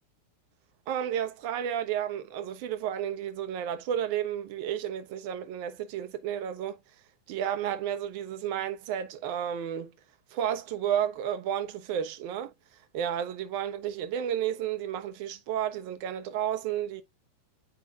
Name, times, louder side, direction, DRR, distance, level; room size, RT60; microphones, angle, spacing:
voice 1, 0.9-6.8 7.3-9.9 10.3-12.5 12.9-17.0, right 10 dB, 45° right, 0.9 m, -32 dB
8.4 x 4.9 x 2.3 m
figure-of-eight pair, 90°, 0 cm